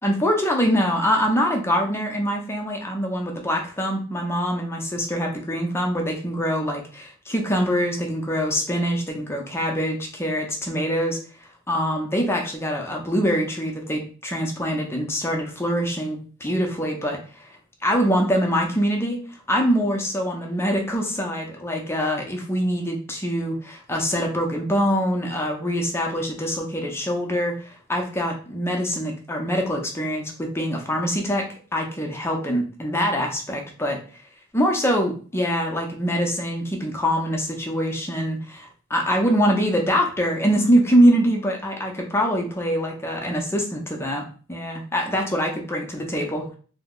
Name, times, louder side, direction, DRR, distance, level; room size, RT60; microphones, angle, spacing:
voice 1, 0.0-11.2 11.7-17.5 17.8-19.2 19.5-31.5 31.7-34.0 34.5-46.6, equal, 15° left, 1 dB, 0.6 m, -24 dB
2.7 x 2.0 x 3.6 m, 0.40 s
head